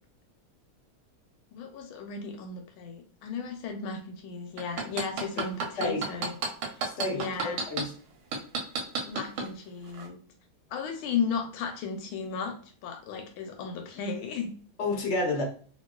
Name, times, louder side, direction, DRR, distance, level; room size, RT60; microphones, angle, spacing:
voice 1, 1.5-6.3 6.7-6.8 7.1-7.6 9.0-10.2 10.7-12.6 12.8-14.5, left 6 dB, 85° left, 5 dB, 1.4 m, -35 dB
sound 1, 4.6-7.8 8.3-9.5 9.9-10.1, right 5 dB, 85° right, 1.5 m, -30 dB
voice 2, 6.8-7.9 14.8-15.4, left 2 dB, 50° left, -1 dB, 0.8 m, -30 dB
2.9 x 2.9 x 2.3 m, 0.44 s
omnidirectional pair, 2.2 m